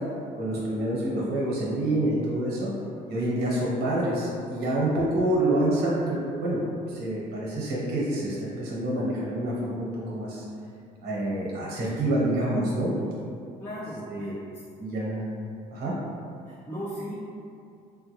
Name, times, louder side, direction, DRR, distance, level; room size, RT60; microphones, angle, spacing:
voice 1, 0.4-2.7 3.1-6.6 6.9-10.4 11.0-12.9 14.1-14.4 14.8-15.2 15.7-15.9, right 1 dB, 70° right, -5 dB, 1.1 m, -27 dB
voice 2, 13.6-14.3 16.7-17.1, equal, 15° left, -10 dB, 0.6 m, -35 dB
3.5 x 2.2 x 3.1 m, 2.4 s
cardioid pair, 110°, 17 cm